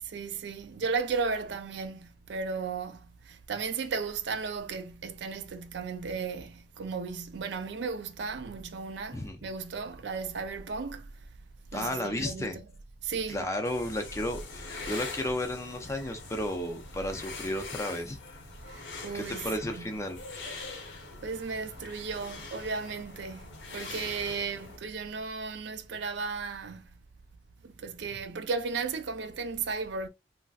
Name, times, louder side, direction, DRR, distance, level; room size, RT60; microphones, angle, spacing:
voice 1, 0.0-11.1 11.7-12.6 13.0-13.5 18.7-19.9 21.2-23.5 23.7-26.8 27.6-30.1, right 5 dB, 65° right, 0.4 m, -35 dB
voice 2, 11.7-12.6 13.3-18.2 19.1-20.2, left 1 dB, 15° left, 0.4 m, -33 dB
sound 1, 13.6-24.8, left 3 dB, 70° left, 0.8 m, -43 dB
3.1 x 2.5 x 2.3 m
head